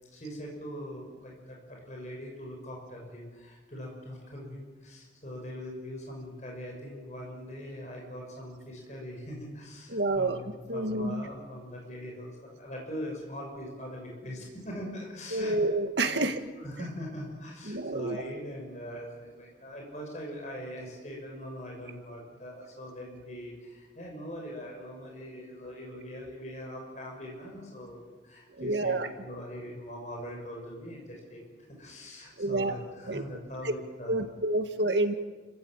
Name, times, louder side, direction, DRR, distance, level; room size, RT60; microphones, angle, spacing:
voice 1, 0.1-15.6 16.0-16.3 16.6-28.9 29.2-31.4 31.7-34.3, equal, 40° left, 0 dB, 6.1 m, -42 dB
voice 2, 9.9-10.4 10.7-11.2 15.3-16.4 17.7-18.2 28.6-29.1 32.4-32.7 33.1-33.2 33.6-33.7 34.1-35.1, right 2 dB, 75° right, 7 dB, 1.9 m, -28 dB
29.5 x 15.5 x 8.9 m, 1.3 s
head